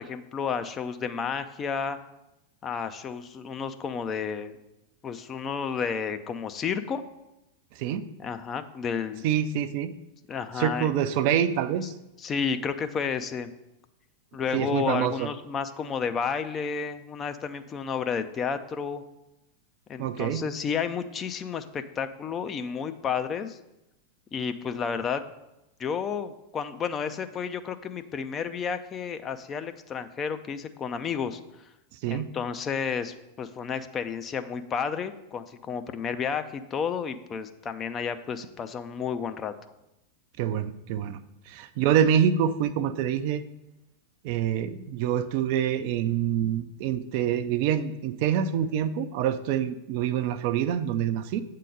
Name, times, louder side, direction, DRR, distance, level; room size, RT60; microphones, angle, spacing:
voice 1, 0.0-2.0 2.6-4.6 5.0-7.1 8.2-9.3 10.3-10.9 12.2-13.5 14.3-19.0 19.9-23.6 24.3-25.3 25.8-31.4 32.1-39.5, left 6 dB, 25° left, 9 dB, 0.5 m, -31 dB
voice 2, 9.2-9.9 10.6-11.9 14.5-15.3 20.0-20.5 32.0-32.3 40.4-41.2 41.5-43.4 44.2-51.4, right 9 dB, 45° right, 12 dB, 0.4 m, -26 dB
8.2 x 3.8 x 6.6 m, 0.92 s
figure-of-eight pair, 90°, 0 cm